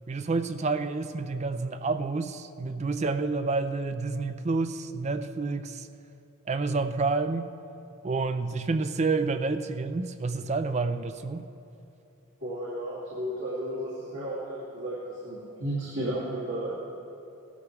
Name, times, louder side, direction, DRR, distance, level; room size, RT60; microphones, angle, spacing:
voice 1, 0.1-5.9 6.5-7.5 8.0-11.4, right 3 dB, 30° right, 10 dB, 0.4 m, -29 dB
voice 2, 12.4-16.7, right 1 dB, 90° right, -10 dB, 2.6 m, -33 dB
16.5 x 13.0 x 3.3 m, 2.7 s
head